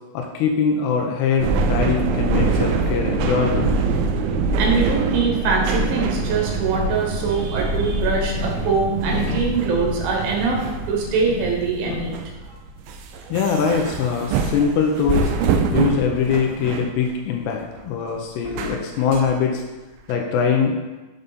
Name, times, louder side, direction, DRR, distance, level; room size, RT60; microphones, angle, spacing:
voice 1, 0.1-3.7 13.3-15.3 15.7-19.6 20.1-20.8, left 6 dB, 85° left, 1 dB, 2.7 m, -22 dB
sound 1, 1.4-17.0 17.5-17.8 18.4-19.3 20.1-20.2, right 4 dB, 85° right, 2.2 m, -24 dB
voice 2, 4.6-12.2, right 4 dB, 70° right, -1 dB, 2.8 m, -23 dB
sound 2, 6.5-12.3, left 1 dB, 35° left, 2.9 m, -36 dB
6.9 x 5.1 x 4.0 m, 1.2 s
omnidirectional pair, 4.9 m